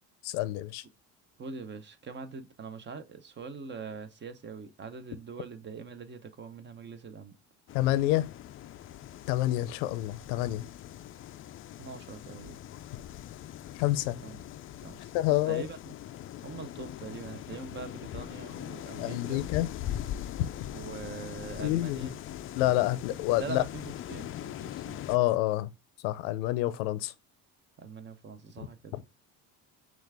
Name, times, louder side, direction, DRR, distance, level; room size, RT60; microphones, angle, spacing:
voice 1, 0.2-0.8 7.7-8.3 9.3-10.6 13.8-14.2 15.1-15.7 19.0-19.7 20.4-20.5 21.6-22.1 22.5-23.6 25.1-25.7 26.0-27.1 28.6-28.7, left 15 dB, 90° left, 0.6 m, -28 dB
voice 2, 1.4-7.3 11.8-12.6 14.2-14.4 14.8-15.1 15.5-19.4 20.7-22.2 23.4-25.0 27.8-28.9, right 5 dB, 30° right, 0.8 m, -43 dB
sound 1, 7.7-25.2, left 12 dB, 40° left, 0.4 m, -41 dB
6.1 x 2.5 x 3.4 m
cardioid pair, 105°, 34 cm